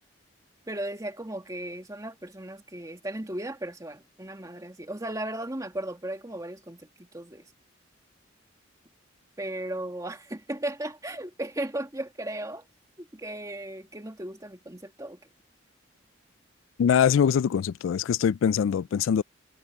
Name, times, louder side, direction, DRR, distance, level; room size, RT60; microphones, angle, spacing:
voice 1, 0.7-7.5 9.4-12.6 13.0-15.2, right 1 dB, 20° right, 1.8 m, -36 dB
voice 2, 16.8-19.2, left 8 dB, 85° left, 0.3 m, -23 dB
head